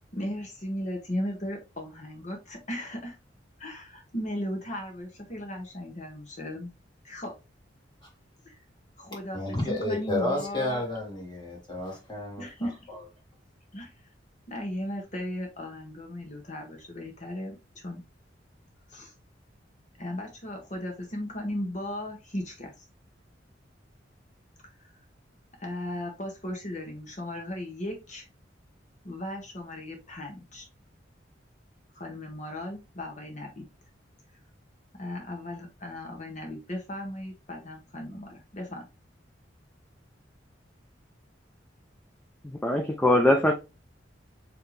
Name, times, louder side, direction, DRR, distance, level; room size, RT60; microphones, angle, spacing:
voice 1, 0.1-3.2 3.6-6.7 7.0-7.3 8.4-8.6 9.0-10.8 12.4-12.8 13.7-13.9 14.5-18.0 18.9-19.1 20.0-22.8 24.8-24.9 25.6-28.3 29.0-30.7 31.9-33.7 35.0-38.9, left 1 dB, 40° left, 1.6 m, -36 dB
voice 2, 9.3-13.0, left 1 dB, 25° left, 1.9 m, -31 dB
voice 3, 42.4-43.5, left 1 dB, 10° left, 0.5 m, -22 dB
4.5 x 3.4 x 3.3 m
head